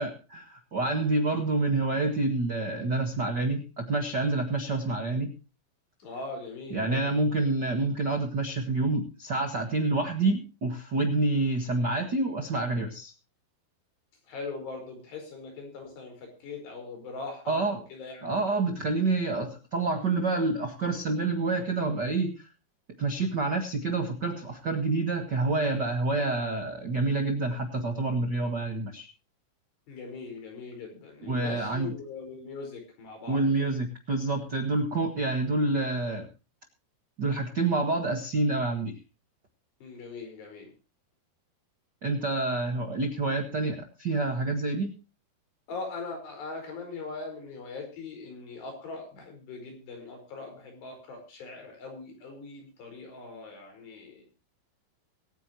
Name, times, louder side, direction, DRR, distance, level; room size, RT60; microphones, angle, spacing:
voice 1, 0.0-5.3 6.7-13.1 17.5-17.8 18.2-22.5 23.0-29.1 31.2-31.9 33.3-36.3 37.2-39.0 42.0-44.9, right 2 dB, 65° right, 5 dB, 1.0 m, -28 dB
voice 2, 6.0-7.0 14.3-18.3 29.9-33.7 39.8-40.7 45.7-54.2, left 3 dB, 75° left, 3 dB, 7.0 m, -41 dB
23.5 x 9.3 x 3.0 m, 0.33 s
omnidirectional pair, 4.9 m